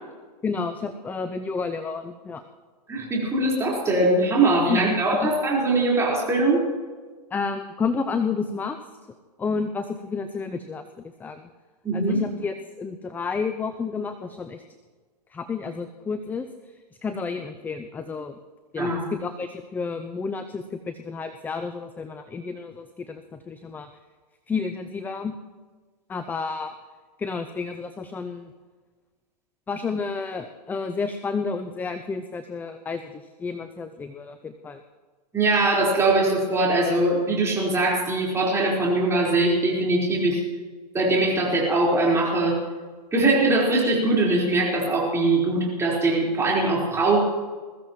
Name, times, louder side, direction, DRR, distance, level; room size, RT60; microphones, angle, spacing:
voice 1, 0.4-2.4 4.7-4.8 5.1-5.3 7.3-8.8 9.4-10.8 11.2-11.5 11.9-14.6 15.3-16.5 17.0-18.3 18.7-23.9 24.5-25.3 26.1-26.7 27.2-28.5 29.7-34.8, left 5 dB, 10° left, 8 dB, 0.5 m, -30 dB
voice 2, 2.9-6.6 11.8-12.2 18.8-19.0 35.3-40.4 40.9-42.6 43.1-47.2, right 2 dB, 15° right, -4 dB, 4.5 m, -21 dB
21.5 x 15.0 x 3.1 m, 1.4 s
hypercardioid pair, 130°, 21 cm